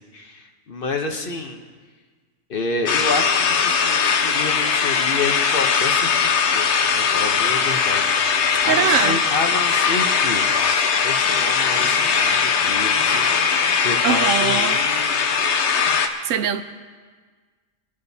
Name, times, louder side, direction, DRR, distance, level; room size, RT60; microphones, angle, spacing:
voice 1, 0.0-1.6 2.5-8.0 8.4-15.3, left 3 dB, 50° left, 1.1 m, -29 dB
sound 1, 2.9-16.1, left 6 dB, 65° left, 1.0 m, -20 dB
voice 2, 8.7-9.2 14.0-14.8 16.2-16.6, right 8 dB, 90° right, 1.0 m, -21 dB
23.5 x 11.0 x 2.8 m
omnidirectional pair, 1.3 m